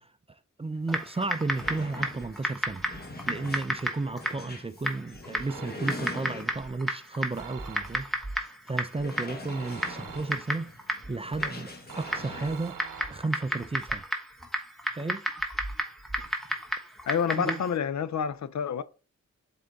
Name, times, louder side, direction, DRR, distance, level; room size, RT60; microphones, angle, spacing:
voice 1, 0.0-2.9 3.3-8.1 8.3-10.7 11.1-12.8 13.1-14.0 14.9-15.2 17.4-17.6, right 3 dB, 20° right, 0.4 m, -33 dB
sound 1, 0.7-0.8 1.1-6.8 7.3-7.5 7.9-8.0 8.9-12.7, left 2 dB, 30° left, 1.3 m, -43 dB
Typing, 0.9-17.8, equal, ahead, 1.1 m, -34 dB
sound 2, 5.5-6.2 7.4-8.3 9.5-10.7 11.9-13.6, right 8 dB, 90° right, 0.7 m, -45 dB
voice 2, 17.1-18.8, left 7 dB, 65° left, 0.5 m, -28 dB
7.7 x 3.8 x 3.5 m
wide cardioid pair, 85°, 30 cm